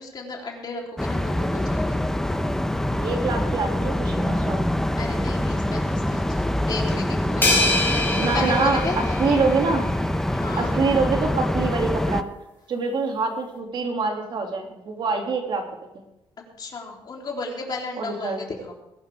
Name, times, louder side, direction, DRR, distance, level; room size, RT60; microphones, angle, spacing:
voice 1, 0.0-2.0 5.0-9.2 10.3-10.7 16.6-18.7, left 3 dB, 45° left, -1 dB, 3.6 m, -33 dB
sound 1, 1.0-12.2, left 1 dB, 5° left, 0.8 m, -25 dB
voice 2, 3.0-4.7 8.2-8.8 9.2-9.8 10.6-12.3 12.7-15.6 18.0-18.4, right 4 dB, 55° right, 2 dB, 2.7 m, -25 dB
sound 2, 7.4-9.9, left 2 dB, 20° left, 4.5 m, -25 dB
20.5 x 11.5 x 3.6 m, 0.90 s
cardioid pair, 120°, 10 cm